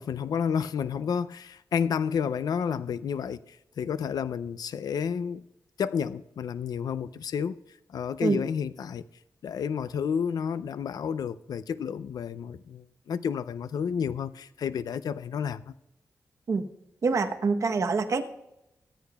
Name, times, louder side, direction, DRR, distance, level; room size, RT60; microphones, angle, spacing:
voice 1, 0.0-5.4 5.8-7.5 7.9-9.0 9.4-15.7, left 7 dB, 75° left, 0.4 m, -30 dB
voice 2, 17.0-18.2, right 4 dB, 50° right, 1.0 m, -25 dB
24.0 x 8.5 x 2.3 m
wide cardioid pair, 140°, 7 cm